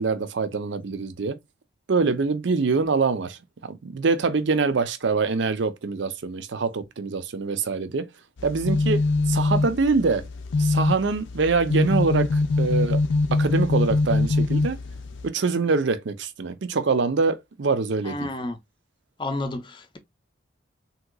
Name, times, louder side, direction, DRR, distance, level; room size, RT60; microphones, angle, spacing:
voice 1, 0.0-1.4 1.9-8.1 8.4-10.3 10.6-13.0 13.3-14.8 15.2-18.3, right 4 dB, 70° right, 0.5 m, -24 dB
sound 1, 8.4-15.3, left 3 dB, 85° left, 0.5 m, -23 dB
voice 2, 18.0-18.6 19.2-20.0, left 2 dB, 25° left, 0.5 m, -31 dB
3.6 x 2.9 x 2.2 m
head